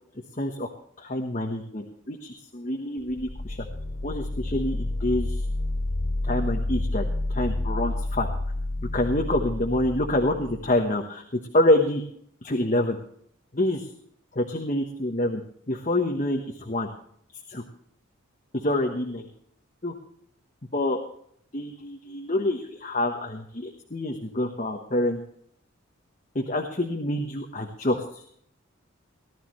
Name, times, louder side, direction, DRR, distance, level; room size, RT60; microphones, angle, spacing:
voice 1, 0.4-0.7 1.0-3.6 4.0-5.5 6.2-7.0 7.3-8.3 8.9-11.2 11.5-12.0 12.4-13.0 13.5-13.9 14.3-15.4 15.7-16.9 17.5-17.6 18.5-19.3 19.8-19.9 20.7-21.0 21.5-25.2 26.3-28.2, left 1 dB, 35° left, 3 dB, 1.2 m, -26 dB
sound 1, 3.0-10.8, left 2 dB, 85° left, 2.3 m, -30 dB
19.0 x 12.5 x 3.2 m, 0.64 s
head